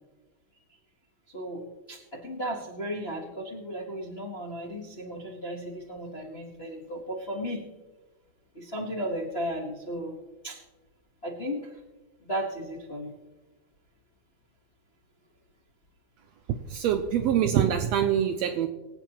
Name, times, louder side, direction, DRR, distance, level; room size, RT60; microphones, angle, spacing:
voice 1, 1.3-7.6 8.5-10.2 10.4-10.6 11.2-11.7 12.2-13.1, equal, 65° left, -3 dB, 0.6 m, -35 dB
voice 2, 16.7-18.7, right 9 dB, 85° right, 7 dB, 1.5 m, -24 dB
24.0 x 8.3 x 2.9 m, 1.2 s
omnidirectional pair, 3.5 m